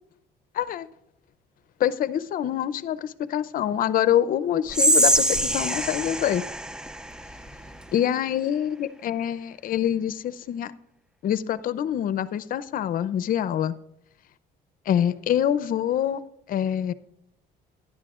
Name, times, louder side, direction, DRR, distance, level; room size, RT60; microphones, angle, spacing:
voice 1, 0.5-0.9 1.8-6.4 7.9-10.7 11.2-13.7 14.9-16.2 16.5-16.9, left 10 dB, 55° left, 0.6 m, -25 dB
Whispering, 4.7-7.9, right 1 dB, 5° right, 0.4 m, -24 dB
16.0 x 11.0 x 2.4 m
cardioid pair, 110°, 17 cm